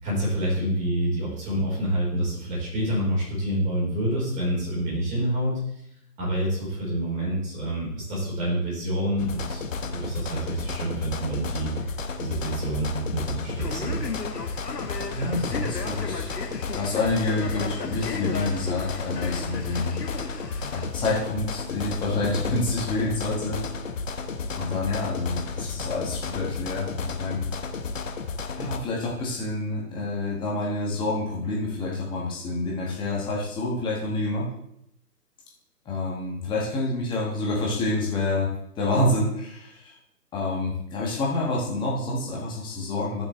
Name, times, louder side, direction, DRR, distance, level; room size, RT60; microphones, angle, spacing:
voice 1, 0.0-5.6 6.2-11.9 12.2-14.0, right 1 dB, 15° right, -6 dB, 4.5 m, -27 dB
sound 1, 9.2-28.8, left 4 dB, 55° left, 1.1 m, -33 dB
Male speech man speaking, 13.6-20.9, left 4 dB, 85° left, 1.7 m, -36 dB
voice 2, 15.1-16.3 16.7-20.0 20.7-23.6 24.6-27.4 28.5-34.5 35.8-38.5 38.8-39.9 40.3-43.2, left 2 dB, 10° left, -4 dB, 1.7 m, -28 dB
15.0 x 6.1 x 3.3 m, 0.74 s
figure-of-eight pair, 140°, 48 cm